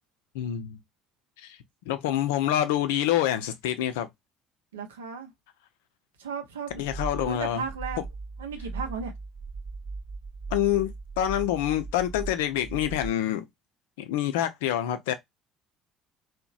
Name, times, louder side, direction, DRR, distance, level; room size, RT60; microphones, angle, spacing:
voice 1, 0.3-0.8 1.4-1.6 1.9-4.1 6.8-7.6 8.0-8.1 10.5-10.9 11.2-13.4 14.0-15.1, left 11 dB, 70° left, 0.4 m, -26 dB
voice 2, 4.7-5.3 6.2-6.8 7.2-8.0 8.4-9.1, right 5 dB, 80° right, 0.5 m, -35 dB
sound 1, 6.7-13.1, right 4 dB, 45° right, 1.0 m, -38 dB
2.8 x 2.1 x 2.4 m
figure-of-eight pair, 55°, 0 cm